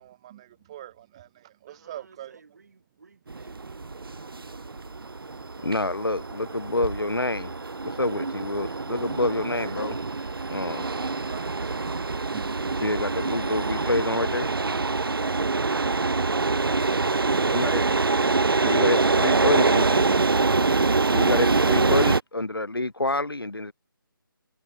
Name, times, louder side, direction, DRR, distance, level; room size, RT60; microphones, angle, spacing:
voice 1, 0.0-2.4 9.5-9.8 10.3-12.8, right 13 dB, 15° right, 0.6 m, -46 dB
voice 2, 1.6-4.8, right 4 dB, 45° right, 4.3 m, -56 dB
sound 1, 3.3-22.2, right 3 dB, 75° right, 0.4 m, -25 dB
voice 3, 5.6-7.5 7.8-10.0 10.5-10.9 12.8-14.5 17.5-17.8 18.6-20.0 21.1-23.7, left 2 dB, 80° left, 0.8 m, -27 dB
Laughter, 7.4-15.5, left 3 dB, 55° left, 4.5 m, -63 dB
figure-of-eight pair, 155°, 12 cm